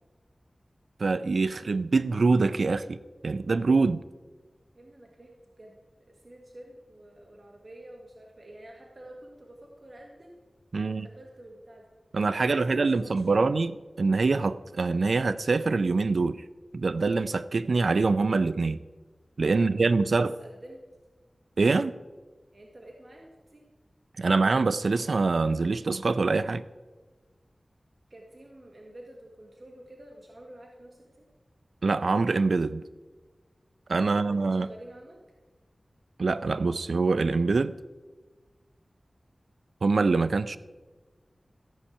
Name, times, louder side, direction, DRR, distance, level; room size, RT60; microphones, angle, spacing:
voice 1, 1.0-4.0 10.7-11.1 12.1-16.4 16.7-18.8 19.4-20.3 21.6-21.9 24.2-26.6 31.8-32.8 33.9-34.7 36.2-37.7 39.8-40.6, right 3 dB, 80° right, 13 dB, 0.4 m, -24 dB
voice 2, 4.7-5.8 6.1-10.4 10.8-11.9 12.4-13.5 19.5-20.8 22.5-23.7 28.1-31.3 33.9-35.2, right 1 dB, 50° right, 0 dB, 1.6 m, -49 dB
14.5 x 5.5 x 8.5 m, 1.3 s
wide cardioid pair, 65°, 0 cm